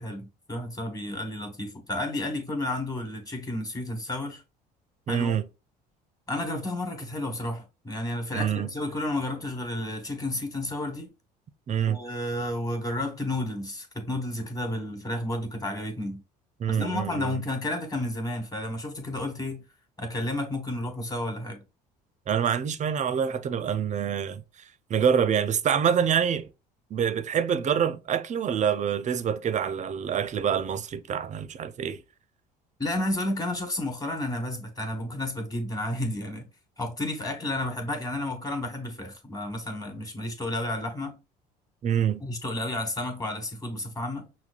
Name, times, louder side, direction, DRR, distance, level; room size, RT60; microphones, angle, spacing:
voice 1, 0.0-4.4 5.1-5.4 6.3-11.1 11.9-16.2 16.7-19.6 20.0-21.6 32.8-36.5 36.8-41.2 42.2-44.3, left 1 dB, 15° left, 1.3 m, -31 dB
voice 2, 5.1-5.5 8.3-8.7 11.7-12.0 16.6-17.4 22.3-24.4 24.9-26.5 26.9-32.0 41.8-42.2, right 8 dB, 35° right, 0.5 m, -26 dB
5.9 x 2.1 x 2.4 m
hypercardioid pair, 70°, 21 cm